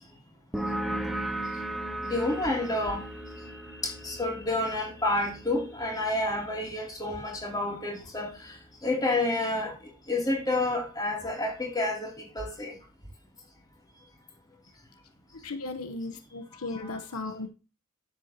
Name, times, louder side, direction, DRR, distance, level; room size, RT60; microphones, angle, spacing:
sound 1, 0.5-7.8, right 1 dB, ahead, 0.9 m, -37 dB
voice 1, 2.0-3.1 3.8-12.7 16.7-16.9, left 2 dB, 15° left, 3.0 m, -30 dB
voice 2, 15.3-17.5, left 3 dB, 80° left, 1.1 m, -36 dB
10.0 x 8.1 x 2.9 m
head